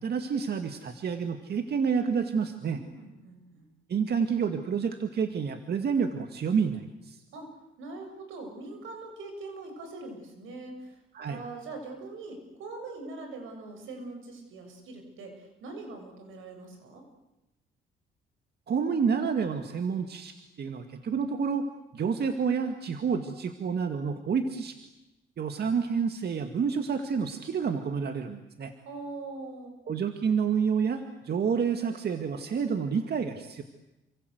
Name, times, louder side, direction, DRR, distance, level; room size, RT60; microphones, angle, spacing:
voice 1, 0.0-2.8 3.9-7.2 11.1-11.4 18.7-21.7 21.9-24.9 25.4-28.7 29.9-33.6, right 6 dB, 55° right, 6 dB, 2.2 m, -29 dB
voice 2, 2.7-3.7 7.3-7.5 7.8-11.0 11.3-17.0 28.8-29.8, right 3 dB, 85° right, 5 dB, 7.2 m, -42 dB
29.0 x 25.5 x 8.1 m, 0.97 s
cardioid pair, 90°, 20 cm